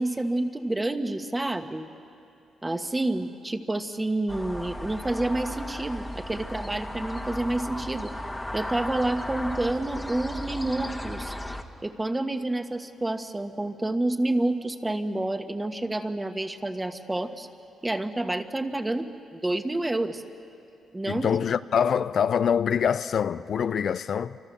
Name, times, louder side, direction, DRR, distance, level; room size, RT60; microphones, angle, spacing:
voice 1, 0.0-1.9 2.6-8.1 8.5-11.3 11.8-17.5 17.8-20.2 20.9-21.3, right 2 dB, 15° right, 1.5 m, -29 dB
sound 1, 4.3-11.6, left 1 dB, 10° left, 1.5 m, -35 dB
voice 2, 21.1-24.4, left 7 dB, 60° left, 0.5 m, -25 dB
28.5 x 25.5 x 6.9 m
cardioid pair, 75°, 0 cm